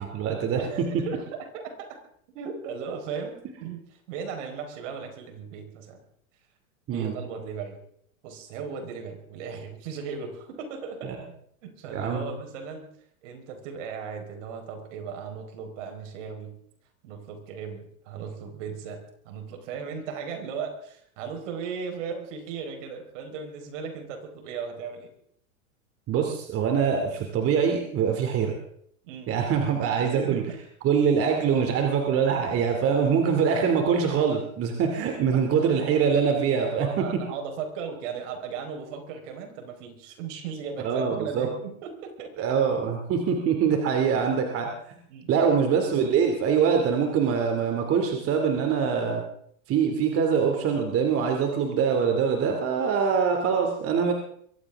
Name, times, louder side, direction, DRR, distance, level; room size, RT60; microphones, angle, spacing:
voice 1, 0.0-1.0 6.9-7.1 11.0-11.2 11.9-12.2 26.1-28.6 29.3-30.4 30.8-37.2 40.8-41.5 42.4-44.7 45.3-49.2 49.7-54.1, right 6 dB, 35° right, 3 dB, 2.7 m, -24 dB
voice 2, 0.6-1.9 2.3-6.0 6.9-7.8 8.2-11.1 11.6-12.9 13.2-16.5 17.0-19.0 19.2-25.1 29.0-29.3 29.9-30.6 35.3-35.4 35.9-36.1 36.7-42.6 43.7-43.8 45.1-45.4, right 6 dB, 60° right, 4 dB, 4.7 m, -37 dB
23.0 x 16.0 x 3.6 m, 0.66 s
hypercardioid pair, 120°, 42 cm